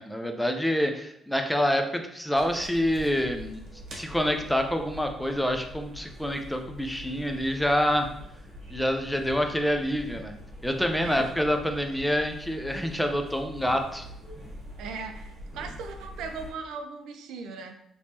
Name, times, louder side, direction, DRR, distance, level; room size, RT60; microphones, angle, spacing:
voice 1, 0.0-3.6 3.9-8.1 8.7-10.3 10.6-14.0, equal, 5° left, 5 dB, 0.4 m, -27 dB
sound 1, 2.3-16.5, equal, 55° right, 1.1 m, -44 dB
voice 2, 14.8-17.8, right 4 dB, 85° right, 5 dB, 0.4 m, -38 dB
3.4 x 3.0 x 2.7 m, 0.76 s
cardioid pair, 90°, 0 cm